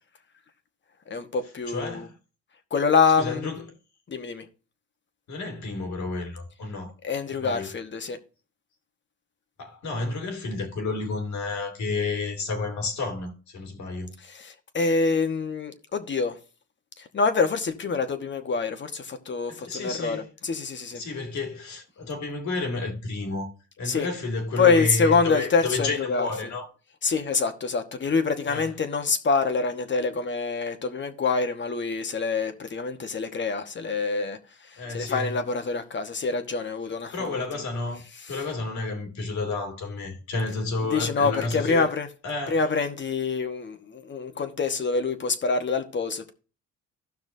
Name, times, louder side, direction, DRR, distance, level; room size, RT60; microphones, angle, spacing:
voice 1, 1.1-2.1 2.7-3.5 4.1-4.5 7.0-8.2 14.2-16.4 17.0-21.0 23.8-24.1 24.6-26.3 27.0-37.4 38.3-38.4 40.9-42.1 42.5-46.3, left 4 dB, 40° left, 1.2 m, -26 dB
voice 2, 1.7-2.1 3.2-3.6 5.3-6.9 7.4-7.7 9.6-14.1 19.5-20.3 20.9-26.7 28.5-28.7 34.8-35.3 37.1-41.9 42.2-42.6, left 3 dB, 70° left, 2.3 m, -31 dB
15.5 x 5.9 x 2.7 m
cardioid pair, 90°, 30 cm